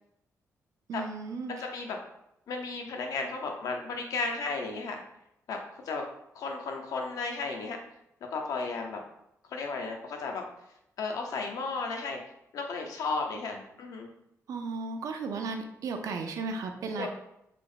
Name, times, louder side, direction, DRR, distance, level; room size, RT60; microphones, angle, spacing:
voice 1, 0.9-1.7 14.5-17.1, right 4 dB, 70° right, 5 dB, 0.4 m, -35 dB
voice 2, 1.5-2.0 2.5-5.0 5.5-5.6 5.8-6.0 6.3-7.8 8.3-9.0 9.5-10.4 11.0-12.2 12.5-14.1 17.0-17.1, left 4 dB, 75° left, 2 dB, 0.6 m, -34 dB
3.4 x 2.0 x 3.8 m, 0.79 s
wide cardioid pair, 145°, 6 cm